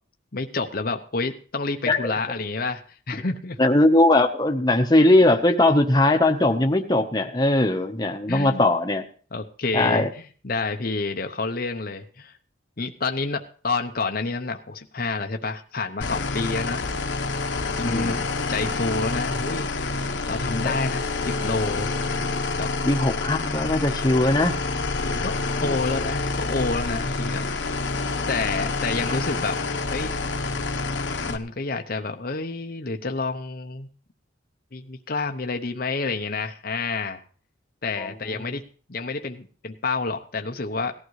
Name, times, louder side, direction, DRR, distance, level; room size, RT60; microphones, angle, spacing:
voice 1, 0.3-2.8 3.1-3.6 8.3-8.6 9.3-12.3 12.8-16.9 17.7-19.7 20.3-21.9 22.6-22.7 25.0-25.3 25.6-27.4 28.3-29.6 29.9-30.1 31.2-33.9 34.7-37.2 37.8-38.6 38.9-40.9, left 3 dB, 45° left, 5 dB, 0.8 m, -29 dB
voice 2, 3.6-9.0 9.7-10.1 17.8-18.2 20.6-20.8 22.8-24.6 25.6-25.7 38.0-38.1 38.5-38.6, left 1 dB, 20° left, 4 dB, 1.0 m, -20 dB
sound 1, 16.0-31.4, left 3 dB, 65° left, 1.0 m, -27 dB
18.0 x 12.0 x 3.2 m, 0.42 s
head